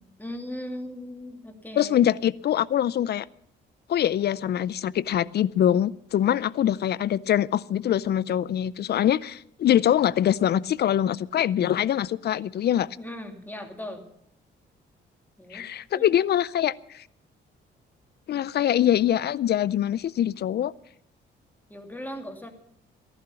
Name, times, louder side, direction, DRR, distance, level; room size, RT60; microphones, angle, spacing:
voice 1, 0.2-2.0 13.0-14.0 15.4-15.7 15.9-16.0 21.7-22.5, left 1 dB, 10° left, 4 dB, 2.7 m, -38 dB
voice 2, 1.8-3.2 3.9-12.9 15.5-17.0 18.3-20.7, left 10 dB, 55° left, 21 dB, 0.5 m, -24 dB
15.0 x 11.5 x 6.8 m, 0.71 s
cardioid pair, 90°, 20 cm